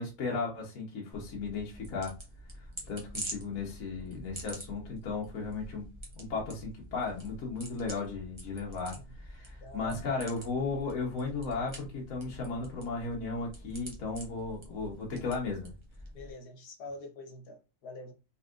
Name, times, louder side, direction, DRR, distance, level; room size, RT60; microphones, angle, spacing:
voice 1, 0.0-2.1 2.5-5.9 6.2-15.7, left 4 dB, 60° left, 1.3 m, -35 dB
sound 1, 1.1-16.3, right 1 dB, 25° right, 0.8 m, -46 dB
voice 2, 9.6-10.0 15.2-15.3 16.1-18.1, left 2 dB, 80° left, 1.5 m, -46 dB
4.0 x 3.5 x 2.4 m
omnidirectional pair, 1.7 m